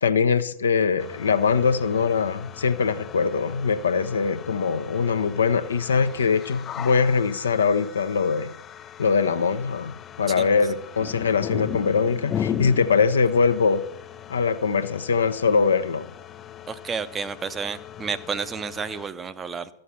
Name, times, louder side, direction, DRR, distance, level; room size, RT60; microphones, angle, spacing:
voice 1, 0.0-8.5 9.0-13.8 14.3-16.1, left 5 dB, 70° left, 11 dB, 0.6 m, -22 dB
sound 1, 1.0-19.1, left 9 dB, 25° left, 0.3 m, -38 dB
voice 2, 16.7-19.7, right 5 dB, 20° right, 13 dB, 0.6 m, -31 dB
13.0 x 6.6 x 5.7 m, 0.78 s
figure-of-eight pair, 95°, 0 cm